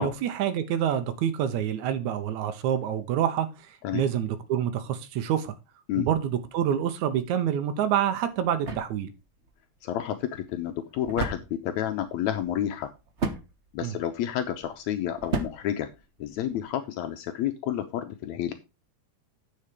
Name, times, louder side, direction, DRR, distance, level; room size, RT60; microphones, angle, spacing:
voice 1, 0.0-5.6 6.0-9.1 13.8-13.9, right 9 dB, 80° right, 2.2 m, -27 dB
sound 1, 7.8-16.6, right 3 dB, 65° right, 0.6 m, -37 dB
voice 2, 9.8-12.9 13.7-15.9 16.2-18.5, left 11 dB, 75° left, 2.0 m, -30 dB
9.7 x 5.7 x 5.1 m
omnidirectional pair, 3.3 m